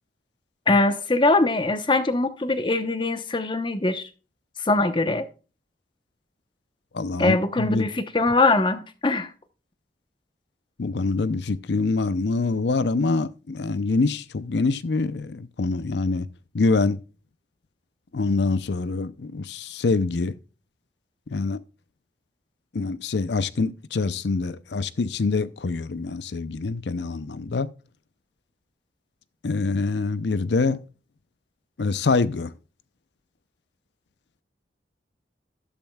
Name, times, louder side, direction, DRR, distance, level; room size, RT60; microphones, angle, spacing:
voice 1, 0.7-4.0 4.6-5.3 7.2-9.3, left 2 dB, 25° left, 0.9 m, -22 dB
voice 2, 6.9-7.9 10.8-16.3 16.5-17.0 18.1-20.3 21.3-21.6 22.7-27.7 29.4-30.8 31.8-32.5, left 3 dB, 65° left, 0.6 m, -25 dB
12.5 x 10.5 x 2.3 m
head